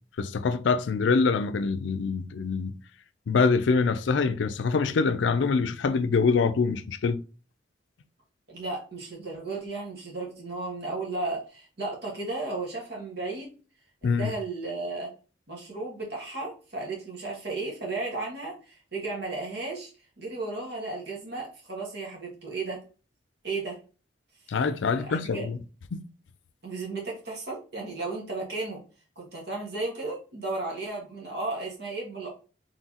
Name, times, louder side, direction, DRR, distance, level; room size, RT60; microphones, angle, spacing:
voice 1, 0.2-2.7 3.3-7.2 14.0-14.3 24.5-25.6 25.9-26.0, left 4 dB, 70° left, 0.4 m, -25 dB
voice 2, 8.5-13.5 14.0-15.1 15.5-19.9 20.2-22.8 23.4-23.8 25.0-25.5 26.6-28.8 29.1-32.3, right 3 dB, 60° right, 1.5 m, -34 dB
4.6 x 3.8 x 2.8 m
head